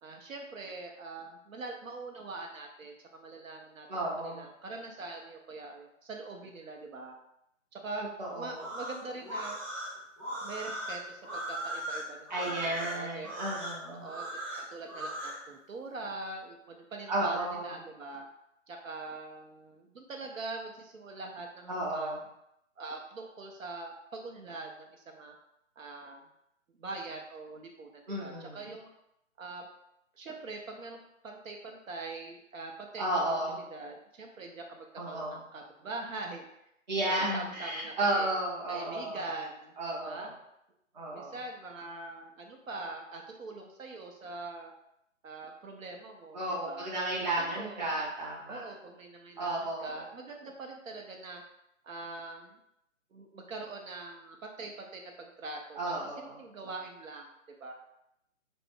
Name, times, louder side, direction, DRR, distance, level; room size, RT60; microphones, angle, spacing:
voice 1, 0.0-3.9 4.2-7.2 7.7-8.1 8.3-9.6 10.4-13.3 13.9-14.2 14.6-18.3 18.7-22.1 22.8-25.3 25.8-26.2 26.8-28.9 29.4-29.7 30.2-33.2 33.5-36.5 37.0-38.3 38.7-39.8 40.0-40.3 41.1-44.7 45.2-46.9 47.4-48.0 48.5-51.4 51.8-52.6 53.1-55.9 56.4-57.3 57.6-57.7, right 3 dB, 80° right, 2 dB, 0.6 m, -43 dB
voice 2, 3.9-4.4 8.2-8.6 12.3-14.1 17.1-17.7 21.7-22.2 28.1-28.6 33.0-33.6 35.0-35.4 36.9-39.2 39.8-40.3 40.9-41.4 46.3-48.6 49.4-50.0 55.8-56.3, right 1 dB, 35° right, -5 dB, 0.7 m, -33 dB
sound 1, 8.5-15.4, right 1 dB, ahead, 0.9 m, -38 dB
2.4 x 2.0 x 3.5 m, 0.80 s
figure-of-eight pair, 155°, 39 cm